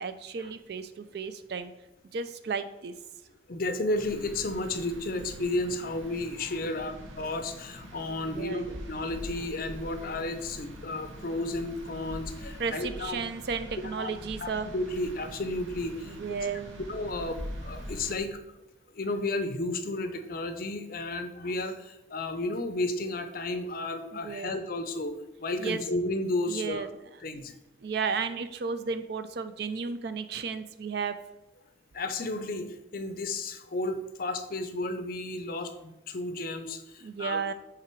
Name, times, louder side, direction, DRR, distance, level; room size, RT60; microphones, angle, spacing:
voice 1, 0.0-1.7 2.1-2.9 8.2-8.8 12.6-14.7 16.0-16.8 24.1-24.6 25.6-25.8 26.5-26.9 27.8-31.2 37.0-37.5, right 5 dB, 55° right, 11 dB, 0.4 m, -33 dB
voice 2, 3.5-13.3 13.8-14.1 14.4-16.2 16.9-18.6 18.9-26.8 27.2-27.5 31.9-37.4, left 2 dB, 45° left, 9 dB, 0.5 m, -33 dB
sound 1, 3.9-18.2, equal, 85° right, 1.1 m, -44 dB
5.8 x 3.8 x 4.5 m, 0.94 s
head